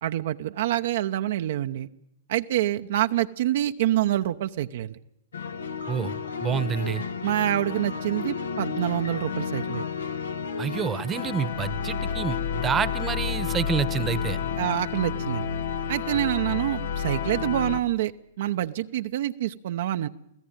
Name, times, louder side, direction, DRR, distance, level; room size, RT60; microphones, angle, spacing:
voice 1, 0.0-1.9 2.3-5.0 7.2-9.8 14.6-15.5 15.9-20.1, right 13 dB, 60° right, 8 dB, 0.8 m, -26 dB
sound 1, 5.3-17.8, left 6 dB, 85° left, 1.5 m, -31 dB
voice 2, 5.9-7.0 10.6-14.4 16.1-16.2, right 7 dB, 20° right, 16 dB, 1.1 m, -28 dB
25.5 x 16.0 x 9.0 m, 0.81 s
hypercardioid pair, 120°, 0 cm